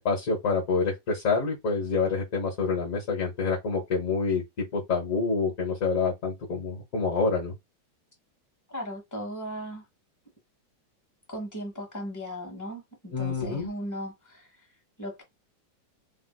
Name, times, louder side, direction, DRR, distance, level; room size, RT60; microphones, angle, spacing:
voice 1, 0.0-4.4 4.7-7.5 13.1-13.7, left 4 dB, 50° left, 1.2 m, -27 dB
voice 2, 8.7-9.8 11.3-14.5 15.0-15.2, equal, 15° left, 0.9 m, -37 dB
3.4 x 2.6 x 2.2 m
omnidirectional pair, 2.0 m